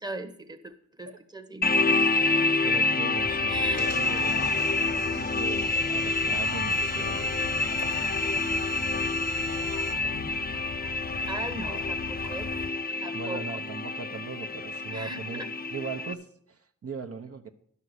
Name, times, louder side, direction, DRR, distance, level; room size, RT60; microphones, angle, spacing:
voice 1, 0.0-2.0 3.3-3.9 11.3-12.5 13.0-13.4 14.9-15.5, right 2 dB, 15° right, 6 dB, 1.1 m, -39 dB
sound 1, 1.6-16.1, left 3 dB, 30° left, 0.8 m, -28 dB
voice 2, 2.6-4.4 4.9-7.7 9.7-9.9 13.1-15.5 15.7-17.5, right 5 dB, 50° right, 5 dB, 1.0 m, -39 dB
sound 2, 3.2-12.7, left 6 dB, 60° left, 1.0 m, -40 dB
sound 3, 3.7-9.9, right 8 dB, 75° right, 1.4 m, -44 dB
11.5 x 5.6 x 8.1 m, 0.64 s
cardioid pair, 85°, 31 cm